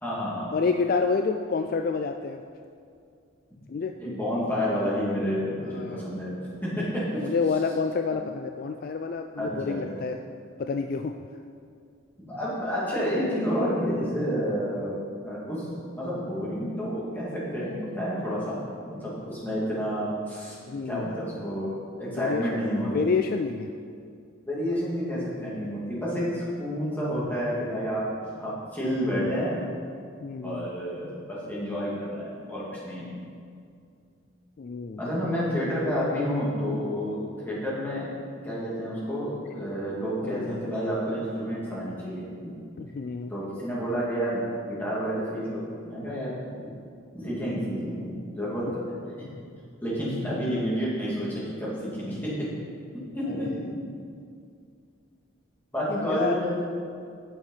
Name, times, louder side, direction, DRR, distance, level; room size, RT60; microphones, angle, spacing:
voice 1, 0.0-0.6 4.0-6.3 6.6-7.2 9.4-10.0 12.2-15.0 15.2-15.7 16.0-18.6 18.9-20.6 20.8-23.1 24.5-28.1 28.4-29.6 30.4-33.1 35.0-37.2 37.4-38.1 38.4-42.5 43.3-46.7 47.1-48.9 49.8-52.5 53.1-53.8 55.7-56.6, equal, 10° left, -8 dB, 2.4 m, -30 dB
voice 2, 0.5-2.4 3.7-3.9 5.7-6.1 7.2-10.2 10.6-11.2 20.7-21.1 22.2-22.6 22.9-23.7 30.2-30.7 34.6-35.0 40.2-40.7 42.8-43.3 53.3-53.6 56.0-56.4, left 4 dB, 45° left, 6 dB, 0.3 m, -28 dB
9.0 x 6.7 x 5.6 m, 2.3 s
head